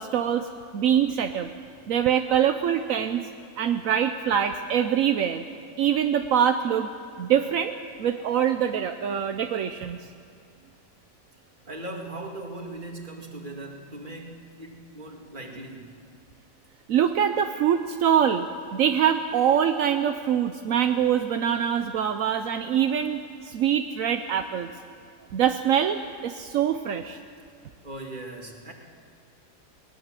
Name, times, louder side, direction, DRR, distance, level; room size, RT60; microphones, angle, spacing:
voice 1, 0.0-1.5 1.9-3.3 3.6-5.4 5.8-6.9 7.2-7.7 8.0-10.0 16.9-18.5 18.7-24.7 25.3-27.2, right 9 dB, 75° right, 7 dB, 1.1 m, -24 dB
voice 2, 11.7-16.0 27.8-28.7, right 2 dB, 35° right, 2 dB, 2.4 m, -39 dB
21.5 x 19.0 x 7.5 m, 2.4 s
omnidirectional pair, 1.4 m